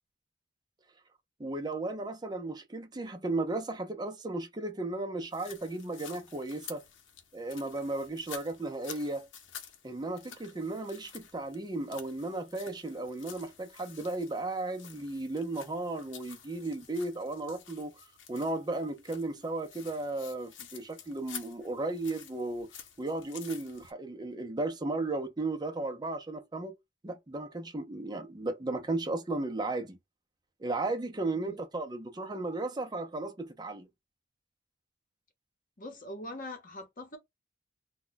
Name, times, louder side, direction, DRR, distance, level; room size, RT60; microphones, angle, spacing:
voice 1, 1.4-6.8 7.3-9.3 9.8-17.9 18.3-22.7 23.0-26.7 27.0-30.0 30.6-33.9, right 2 dB, 20° right, 0.6 m, -35 dB
sound 1, 5.3-23.9, left 8 dB, 75° left, 0.7 m, -50 dB
voice 2, 35.8-37.2, left 1 dB, 45° left, 0.9 m, -42 dB
2.2 x 2.2 x 3.8 m
head